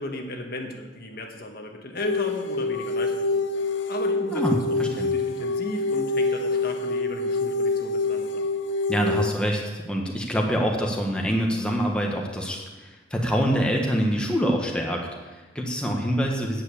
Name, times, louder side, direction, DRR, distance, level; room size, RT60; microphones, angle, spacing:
voice 1, 0.0-3.4 3.9-8.4, left 1 dB, 55° left, 3 dB, 1.3 m, -35 dB
sound 1, 2.0-9.3, left 3 dB, 85° left, 0.8 m, -26 dB
voice 2, 4.3-5.1 8.9-16.6, equal, 5° left, 0 dB, 1.4 m, -25 dB
9.4 x 7.6 x 8.5 m, 1.3 s
head